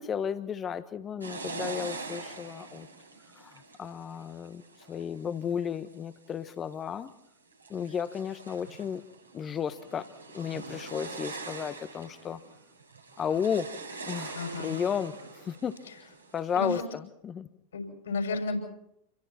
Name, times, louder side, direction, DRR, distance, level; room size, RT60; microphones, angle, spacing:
voice 1, 0.1-2.9 3.4-4.6 4.9-7.1 7.7-9.0 9.3-10.1 10.3-12.4 13.2-13.7 14.0-15.8 16.3-17.5, left 7 dB, 25° left, 13 dB, 1.3 m, -33 dB
sound 1, 1.2-5.9 6.5-7.1 7.5-16.7, right 3 dB, 85° right, 4.5 m, -43 dB
voice 2, 14.3-14.7 16.5-16.8 17.7-18.6, left 3 dB, 65° left, 4 dB, 6.6 m, -32 dB
28.5 x 23.5 x 4.4 m, 0.77 s
figure-of-eight pair, 90°, 0 cm